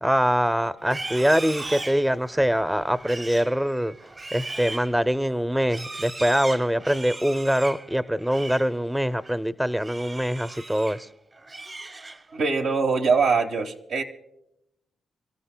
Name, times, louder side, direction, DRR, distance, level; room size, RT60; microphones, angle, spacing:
voice 1, 0.0-4.0 4.3-11.1, equal, 5° right, 14 dB, 0.5 m, -24 dB
Livestock farm animals working animals, 0.8-8.7 9.1-9.4 9.8-11.0 11.4-12.4, right 2 dB, 40° right, 0.9 m, -38 dB
voice 2, 12.3-14.0, right 4 dB, 85° right, 2 dB, 1.2 m, -23 dB
28.0 x 14.0 x 2.2 m, 0.83 s
supercardioid pair, 55°, 0 cm